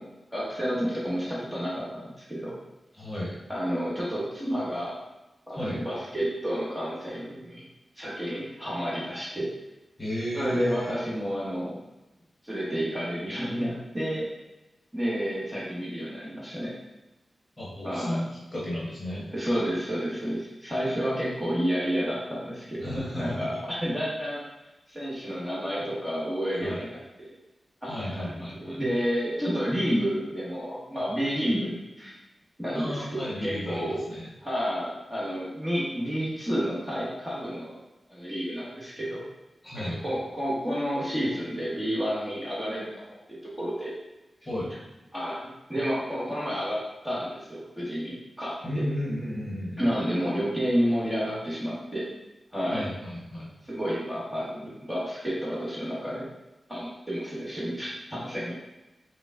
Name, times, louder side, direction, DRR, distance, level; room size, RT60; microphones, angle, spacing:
voice 1, 0.0-2.5 3.5-5.0 5.5-7.6 8.0-9.5 10.3-11.8 12.4-14.2 14.9-16.7 17.8-18.2 19.3-22.9 23.2-24.4 24.9-27.3 27.8-32.1 32.6-34.0 34.4-37.7 38.1-39.2 39.7-42.9 43.3-43.9 45.1-48.8 49.8-52.0 52.5-52.8 53.6-56.3 56.7-58.5, equal, 5° right, -8 dB, 1.3 m, -30 dB
voice 2, 3.0-3.3 5.6-5.8 10.0-10.9 17.6-19.3 22.8-23.6 26.6-26.9 27.9-28.8 32.7-34.3 39.6-40.0 44.5-44.7 48.6-49.8 52.7-53.5, left 1 dB, 25° left, -7 dB, 1.3 m, -33 dB
5.1 x 2.3 x 3.6 m, 0.99 s
wide cardioid pair, 115°, 0 cm